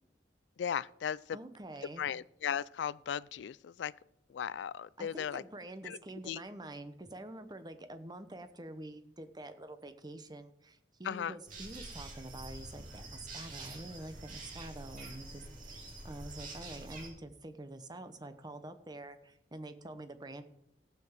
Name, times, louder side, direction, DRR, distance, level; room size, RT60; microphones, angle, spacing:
voice 1, 0.6-1.4 2.0-3.9 4.3-5.4 5.8-6.0 6.3-6.4 11.0-11.4, left 8 dB, 80° left, 0.3 m, -36 dB
voice 2, 1.3-2.1 5.0-20.4, right 1 dB, 25° right, 0.9 m, -47 dB
sound 1, 11.5-17.1, right 2 dB, 50° right, 3.1 m, -47 dB
15.5 x 5.9 x 7.3 m
head